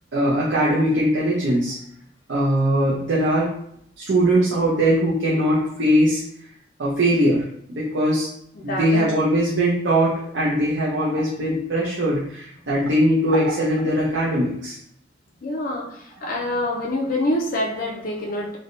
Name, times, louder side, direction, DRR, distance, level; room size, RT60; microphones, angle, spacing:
voice 1, 0.1-1.8 2.3-3.5 4.0-6.2 6.8-7.4 7.7-8.3 8.6-14.8, right 1 dB, 75° right, -6 dB, 0.6 m, -20 dB
voice 2, 8.6-9.1 15.4-18.6, left 1 dB, 50° left, -2 dB, 0.4 m, -26 dB
3.3 x 2.2 x 2.5 m, 0.71 s
head